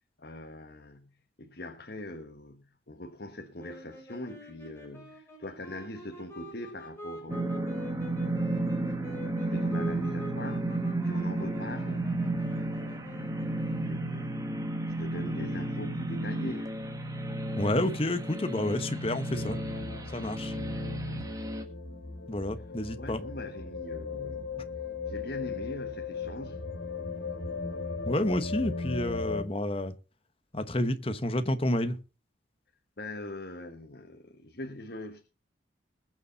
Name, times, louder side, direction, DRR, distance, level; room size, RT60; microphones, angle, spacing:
voice 1, 0.2-12.2 12.5-14.5 14.9-16.8 23.0-24.6 25.0-26.7 33.0-35.2, left 1 dB, 55° left, 1.3 m, -43 dB
sound 1, 3.6-14.1, equal, 15° left, 5.5 m, -46 dB
sound 2, 7.3-21.6, right 2 dB, 20° right, 1.5 m, -32 dB
voice 2, 17.6-19.6 20.1-20.6 22.3-23.2 28.0-29.9 30.5-32.0, left 1 dB, 30° left, 1.0 m, -29 dB
sound 3, 19.3-29.4, left 4 dB, 85° left, 3.0 m, -37 dB
21.0 x 7.0 x 4.0 m
head